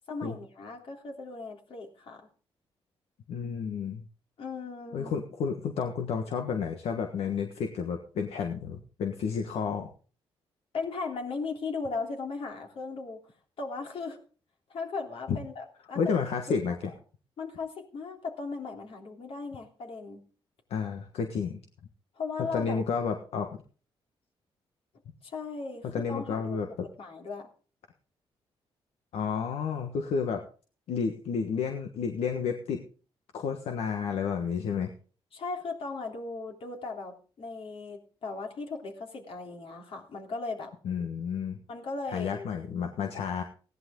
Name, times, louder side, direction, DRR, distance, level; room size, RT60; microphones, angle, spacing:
voice 1, 0.0-2.3 4.4-5.1 10.7-13.2 13.6-14.2 14.7-16.0 16.7-16.8 17.4-20.2 22.2-22.8 25.2-26.6 27.0-27.5 35.3-40.7 41.7-42.5, left 4 dB, 65° left, 1 dB, 3.4 m, -37 dB
voice 2, 3.3-4.0 4.9-9.9 15.3-15.4 15.9-16.7 20.7-21.6 22.4-23.5 25.8-26.9 29.1-30.4 30.9-32.8 33.3-34.9 40.8-41.6 42.1-43.4, left 6 dB, 85° left, 4 dB, 1.4 m, -31 dB
16.5 x 11.0 x 3.8 m, 0.39 s
cardioid pair, 75°, 10 cm